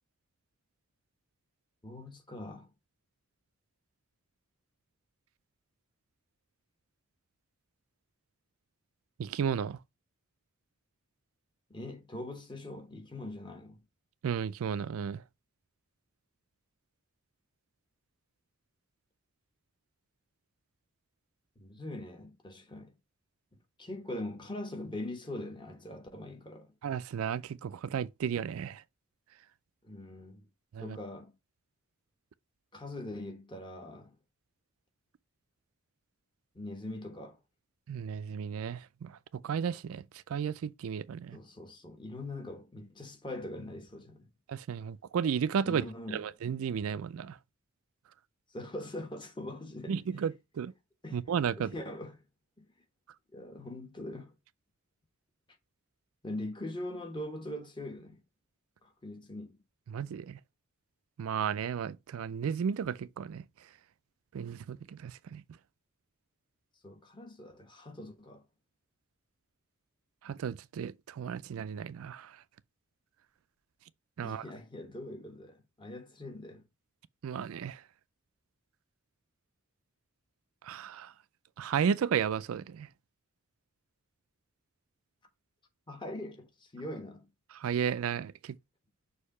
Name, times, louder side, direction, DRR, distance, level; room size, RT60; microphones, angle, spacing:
voice 1, 1.8-2.7 11.7-13.8 21.6-22.9 23.8-26.7 29.8-30.5 30.8-31.3 32.7-34.2 36.5-37.4 41.3-44.3 45.6-46.2 48.5-50.0 51.0-51.2 51.6-52.2 52.6-52.7 53.3-54.3 56.2-58.2 58.8-59.5 66.8-68.4 74.2-76.6 85.9-87.3, left 1 dB, 20° left, 1.2 m, -42 dB
voice 2, 9.2-9.8 14.2-15.2 26.8-28.8 30.7-31.0 37.9-39.2 39.4-40.0 40.3-41.4 44.5-45.9 46.1-47.4 49.9-50.7 51.1-51.7 59.9-60.4 61.2-63.4 64.3-65.4 70.2-72.4 74.2-74.4 77.2-77.8 80.6-81.1 81.6-82.9 87.5-88.6, right 7 dB, 70° right, 0.4 m, -33 dB
6.4 x 2.8 x 5.4 m
head